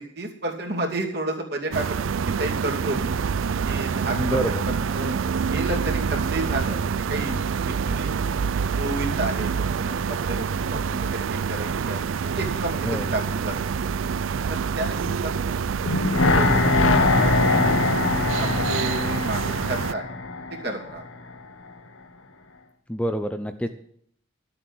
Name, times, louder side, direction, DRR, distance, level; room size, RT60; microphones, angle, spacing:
voice 1, 0.2-3.1 3.6-4.6 4.9-5.1 5.4-7.4 7.7-8.1 8.7-13.7 14.5-15.5 16.0-16.1 16.4-16.6 17.1-17.8 18.4-19.4 19.7-20.0 20.6-21.0, right 1 dB, 55° right, 1 dB, 2.7 m, -31 dB
sound 1, 1.7-19.9, right 6 dB, 85° right, 0.4 m, -26 dB
voice 2, 4.1-4.6 12.8-13.1 22.9-23.7, equal, 5° left, 8 dB, 0.6 m, -27 dB
sound 2, 15.9-21.0 21.3-21.4, left 3 dB, 85° left, 1.3 m, -22 dB
12.5 x 7.8 x 7.7 m, 0.65 s
head